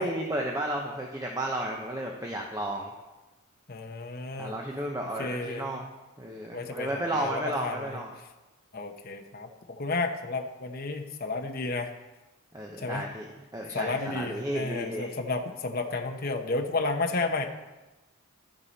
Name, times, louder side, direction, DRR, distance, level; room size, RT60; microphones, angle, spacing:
voice 1, 0.0-2.9 4.4-5.9 6.2-8.1 12.5-13.3 13.5-15.1, right 1 dB, 15° right, 0 dB, 0.8 m, -33 dB
voice 2, 3.7-4.6 5.2-5.8 6.5-8.0 8.7-11.9 12.8-13.1 13.7-17.5, left 3 dB, 40° left, 4 dB, 0.9 m, -32 dB
12.0 x 9.0 x 4.1 m, 1.1 s
head